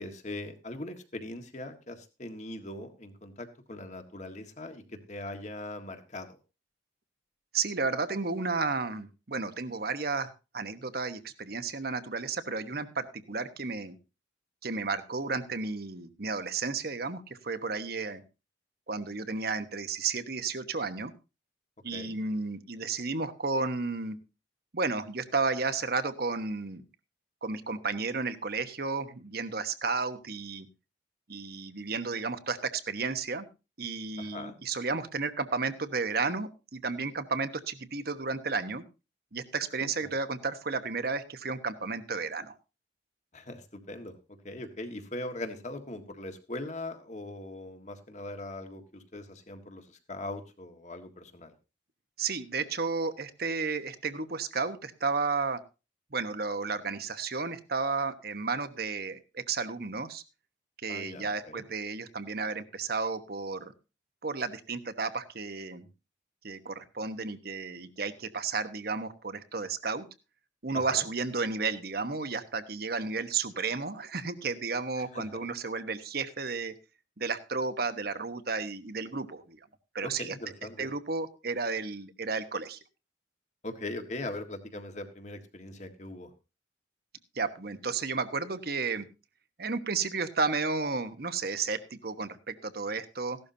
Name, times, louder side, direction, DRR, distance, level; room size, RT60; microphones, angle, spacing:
voice 1, 0.0-6.4 21.9-22.2 34.2-34.5 39.8-40.1 43.3-44.2 44.4-51.5 60.9-61.6 70.7-71.1 75.0-75.4 80.0-80.9 83.6-86.3, left 2 dB, 40° left, 6 dB, 1.7 m, -41 dB
voice 2, 7.5-14.0 14.6-18.2 18.9-21.1 21.8-24.2 24.7-26.8 27.4-30.7 31.3-33.5 33.8-38.8 39.3-42.5 52.2-55.6 56.1-60.2 60.8-63.7 64.2-65.9 66.4-70.1 70.6-76.7 77.2-79.6 79.9-80.4 80.8-82.8 87.3-89.1 89.6-93.4, right 4 dB, 55° right, 10 dB, 1.1 m, -32 dB
16.0 x 12.0 x 2.8 m, 0.29 s
head